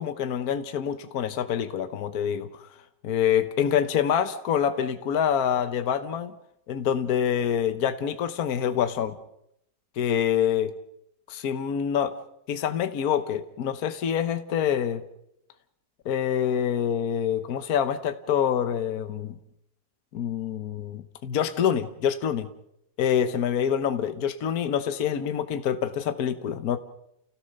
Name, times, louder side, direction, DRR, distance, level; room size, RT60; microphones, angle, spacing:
voice 1, 0.0-2.7 3.0-6.3 6.7-9.1 10.0-10.7 11.3-12.1 12.5-15.0 16.0-19.4 20.1-22.5 23.0-26.8, left 8 dB, 60° left, 9 dB, 1.4 m, -26 dB
30.0 x 16.5 x 6.6 m, 0.80 s
omnidirectional pair, 1.8 m